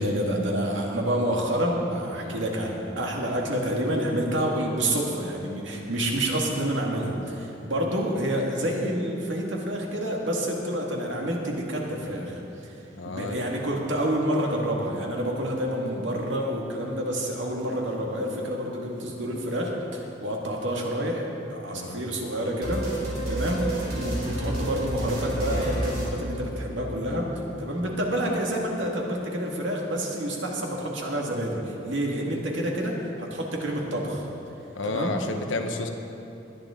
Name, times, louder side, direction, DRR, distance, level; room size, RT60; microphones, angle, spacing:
voice 1, 0.0-12.7 13.0-22.9 23.2-34.3 34.8-35.2, equal, 75° right, -1 dB, 2.0 m, -28 dB
voice 2, 12.9-13.4 21.7-22.0 34.7-35.9, left 2 dB, 85° left, 5 dB, 1.1 m, -31 dB
sound 1, 22.6-26.9, right 1 dB, 55° right, 3.5 m, -30 dB
20.0 x 10.5 x 3.8 m, 2.8 s
head